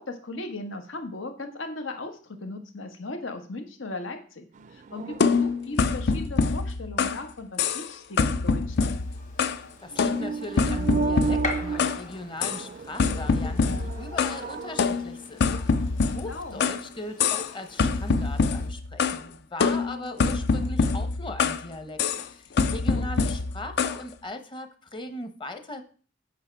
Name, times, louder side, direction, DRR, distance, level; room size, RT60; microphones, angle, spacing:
voice 1, 0.0-8.9 16.0-16.6 22.9-23.1, left 2 dB, 85° left, 6 dB, 1.4 m, -38 dB
Metal shelf, 4.5-5.9 9.8-15.4, right 5 dB, 40° right, 0.4 m, -33 dB
sound 1, 5.2-7.3 7.6-7.9 8.2-9.7 10.0-12.0 12.4-12.6 13.0-14.4 14.8-16.8 17.2-17.5 17.8-19.2 19.6-21.7 22.0-22.3 22.6-24.0, left 4 dB, 60° left, 0.5 m, -25 dB
Gunshot gunfire, 8.7-18.7, left 2 dB, 40° left, 1.8 m, -42 dB
voice 2, 9.8-25.8, left 1 dB, 25° left, 8 dB, 0.9 m, -39 dB
8.3 x 5.8 x 4.6 m, 0.42 s
head